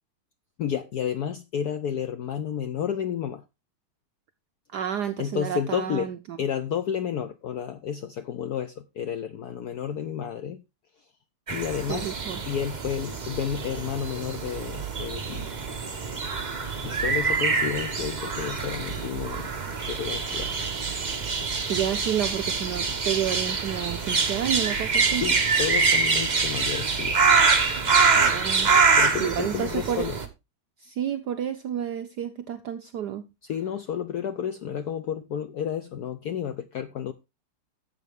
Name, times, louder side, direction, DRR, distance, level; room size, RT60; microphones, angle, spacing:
voice 1, 0.6-3.4 5.2-10.6 11.5-12.1 12.4-15.5 16.8-20.5 25.1-27.2 29.0-30.2 33.4-37.1, left 8 dB, 85° left, 0.8 m, -31 dB
voice 2, 4.7-6.4 11.9-12.4 21.7-25.2 28.1-28.7 29.2-30.1 30.8-33.2, right 10 dB, 70° right, 1.0 m, -30 dB
sound 1, 11.5-30.3, right 4 dB, 30° right, 0.8 m, -25 dB
11.0 x 7.6 x 3.5 m
omnidirectional pair, 2.4 m